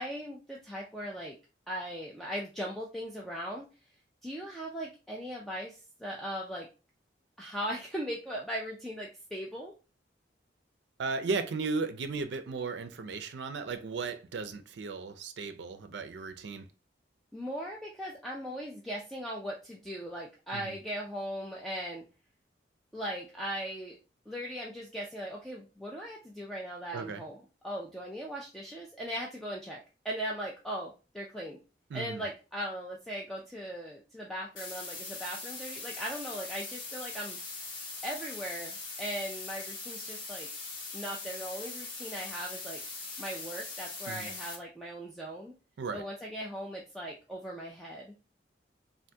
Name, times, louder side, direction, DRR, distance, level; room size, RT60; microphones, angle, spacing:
voice 1, 0.0-1.4 1.7-3.7 4.2-6.7 7.4-9.7 17.3-22.0 22.9-24.0 24.3-27.4 27.6-29.8 30.0-31.6 31.9-37.4 38.0-40.5 40.9-42.8 43.2-45.5 45.9-48.1, equal, ahead, 0.4 m, -39 dB
voice 2, 11.0-16.7 20.5-20.7 26.9-27.2 31.9-32.2 44.1-44.3 45.8-46.0, right 4 dB, 75° right, 0.4 m, -35 dB
sound 1, 34.6-44.6, left 3 dB, 90° left, 1.1 m, -41 dB
3.3 x 2.5 x 2.7 m
head